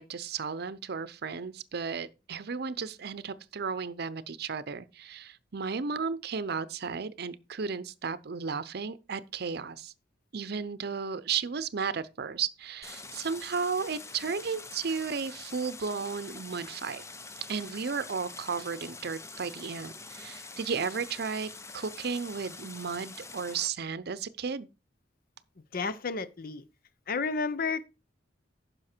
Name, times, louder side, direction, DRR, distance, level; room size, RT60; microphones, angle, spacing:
voice 1, 0.0-9.9 10.3-17.0 17.5-24.7, right 5 dB, 60° right, 0.6 m, -34 dB
Stream, 12.8-23.7, left 3 dB, 15° left, 0.6 m, -45 dB
voice 2, 25.7-26.6 27.1-27.8, left 4 dB, 55° left, 0.8 m, -31 dB
9.9 x 6.3 x 4.4 m
head